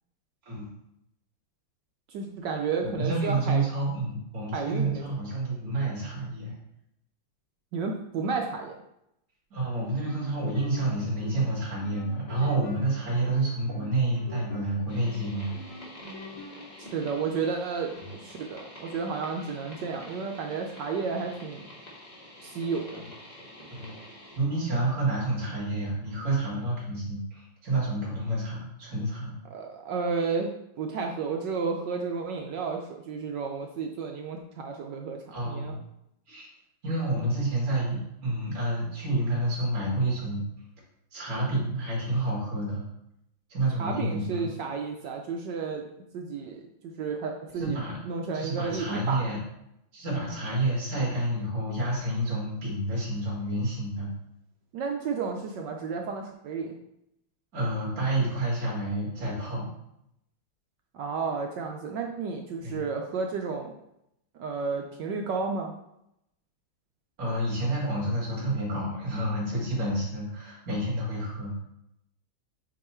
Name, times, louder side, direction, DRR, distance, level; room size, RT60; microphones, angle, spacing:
voice 1, 2.1-3.7 4.5-5.0 7.7-8.8 16.9-21.7 22.4-23.0 29.5-35.2 35.4-35.8 43.8-45.9 46.1-46.6 47.0-47.8 48.0-49.3 54.7-56.7 60.9-63.7 64.4-65.7, right 5 dB, 75° right, 2 dB, 1.0 m, -32 dB
voice 2, 2.8-6.5 9.5-15.6 23.7-23.9 24.4-29.4 35.3-35.8 36.3-36.5 36.8-40.4 41.1-42.8 43.5-44.5 47.6-48.0 48.3-49.4 49.9-54.1 57.5-59.7 62.6-62.8 67.2-71.5, right 2 dB, 40° right, -7 dB, 2.5 m, -29 dB
sound 1, 9.9-17.3, left 2 dB, 75° left, 1.9 m, -46 dB
sound 2, 14.9-24.4, equal, 20° left, 1.3 m, -47 dB
7.7 x 3.1 x 4.3 m, 0.81 s
omnidirectional pair, 2.4 m